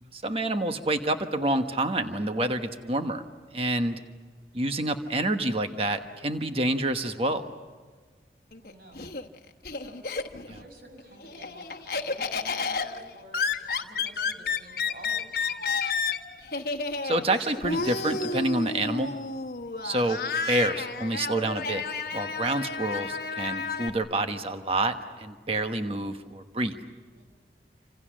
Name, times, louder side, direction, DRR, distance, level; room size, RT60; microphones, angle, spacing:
voice 1, 0.0-3.2 3.5-4.0 4.5-7.4 10.5-10.6 17.0-19.1 19.8-20.2 20.5-21.8 22.1-26.7, right 1 dB, 35° right, 7 dB, 1.2 m, -28 dB
Laughter, 8.5-10.6 11.0-23.9, left 4 dB, 55° left, 1.2 m, -31 dB
voice 2, 8.6-9.1 9.7-10.0 10.5-13.4 13.8-15.5 27.2-27.3, right 1 dB, 55° right, 3 dB, 6.1 m, -50 dB
28.0 x 26.5 x 6.4 m, 1.5 s
head